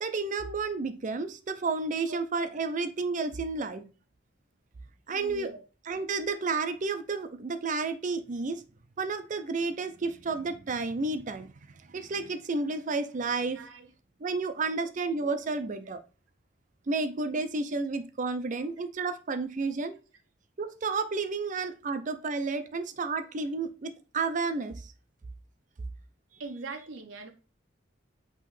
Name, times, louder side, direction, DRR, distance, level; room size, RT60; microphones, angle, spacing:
voice 1, 0.0-3.8 5.1-5.5 5.9-8.6 9.0-11.5 11.9-13.6 14.2-16.0 16.9-20.0 20.6-24.9, right 4 dB, 45° right, 0.5 m, -31 dB
voice 2, 5.1-5.6 13.5-13.9 14.6-14.9 18.6-18.7 26.4-27.3, right 3 dB, 85° right, 0.7 m, -42 dB
5.6 x 3.0 x 3.1 m
head